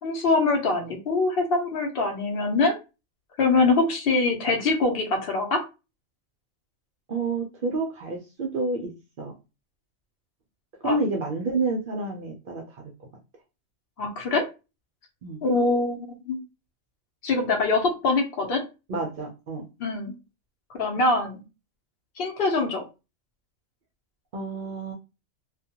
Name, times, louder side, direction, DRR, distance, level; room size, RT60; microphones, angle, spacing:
voice 1, 0.0-2.8 3.4-5.6 10.8-11.0 14.0-14.4 15.4-16.4 17.2-18.6 19.8-20.1 20.7-21.4 22.2-22.8, left 3 dB, 55° left, 3 dB, 0.8 m, -23 dB
voice 2, 7.1-8.9 9.2-9.3 10.8-12.8 15.2-15.4 18.9-19.6 24.3-24.9, right 3 dB, 60° right, 0 dB, 0.5 m, -29 dB
2.3 x 2.1 x 2.7 m, 0.29 s
omnidirectional pair, 1.3 m